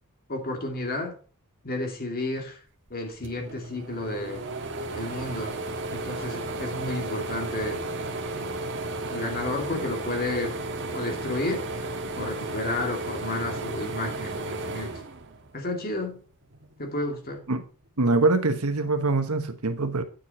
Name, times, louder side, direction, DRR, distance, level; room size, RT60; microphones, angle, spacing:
voice 1, 0.3-1.2 1.6-2.6 2.9-4.4 4.9-5.5 5.9-7.8 8.4-8.5 9.1-10.6 10.9-11.9 12.2-14.9 15.5-16.2 16.8-17.4, left 2 dB, 45° left, 2.5 m, -31 dB
sound 1, 2.9-3.0 3.2-15.8 16.3-17.4, right 2 dB, 55° right, 1.5 m, -34 dB
voice 2, 18.0-20.0, right 3 dB, 75° right, 1.2 m, -24 dB
9.0 x 7.4 x 4.3 m
head